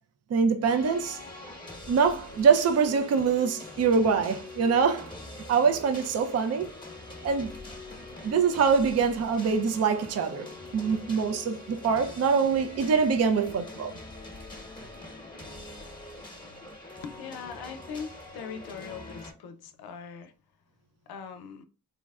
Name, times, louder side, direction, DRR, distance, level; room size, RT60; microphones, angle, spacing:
voice 1, 0.3-1.2 1.9-5.1 5.5-6.7 7.2-7.5 8.2-10.5 10.7-13.9, right 5 dB, 45° right, 0.5 m, -24 dB
sound 1, 0.6-19.3, left 2 dB, 10° left, 1.0 m, -44 dB
voice 2, 17.0-20.3 21.1-21.6, left 6 dB, 80° left, 0.6 m, -41 dB
3.7 x 2.0 x 2.3 m
cardioid pair, 60°, 37 cm